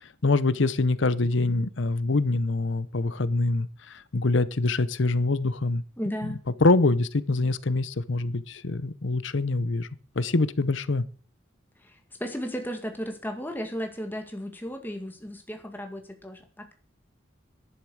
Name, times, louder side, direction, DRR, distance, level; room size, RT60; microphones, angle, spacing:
voice 1, 0.2-5.8 6.6-9.9 10.2-11.0, left 3 dB, 65° left, 0.8 m, -24 dB
voice 2, 6.0-6.4 11.8-16.7, equal, 10° left, 2.1 m, -35 dB
11.5 x 10.5 x 6.3 m
head